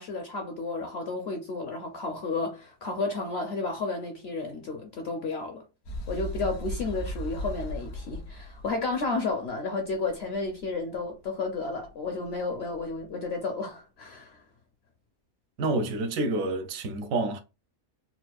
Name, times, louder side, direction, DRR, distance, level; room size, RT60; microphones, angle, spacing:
voice 1, 0.0-5.6 6.1-14.4, left 3 dB, 60° left, 0.7 m, -32 dB
sound 1, 5.8-13.3, equal, 80° left, 1.7 m, -39 dB
voice 2, 15.6-17.4, right 2 dB, 70° right, 1.0 m, -28 dB
4.3 x 2.3 x 2.3 m
omnidirectional pair, 1.5 m